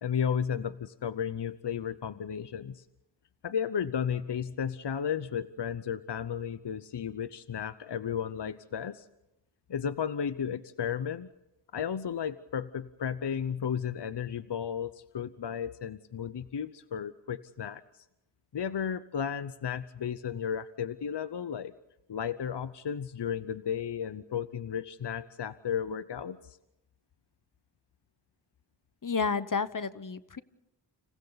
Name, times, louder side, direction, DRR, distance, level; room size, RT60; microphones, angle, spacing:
voice 1, 0.0-2.8 3.4-9.1 9.7-11.3 11.7-18.0 18.5-21.7 22.1-26.6, left 8 dB, 65° left, 13 dB, 0.8 m, -34 dB
voice 2, 29.0-30.4, left 5 dB, 45° left, 15 dB, 1.0 m, -31 dB
30.0 x 27.5 x 4.1 m, 0.89 s
cardioid pair, 40°, 44 cm